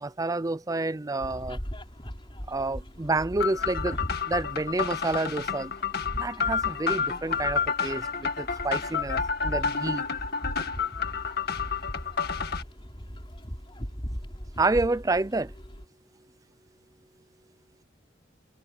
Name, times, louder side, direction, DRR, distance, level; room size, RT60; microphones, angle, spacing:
voice 1, 0.0-1.6 2.5-4.0 4.3-5.7 6.2-10.0 14.6-15.5, right 2 dB, 15° right, 0.5 m, -29 dB
sound 1, 1.2-15.8, equal, 25° left, 4.9 m, -39 dB
sound 2, 3.4-12.6, left 6 dB, 50° left, 1.8 m, -30 dB
head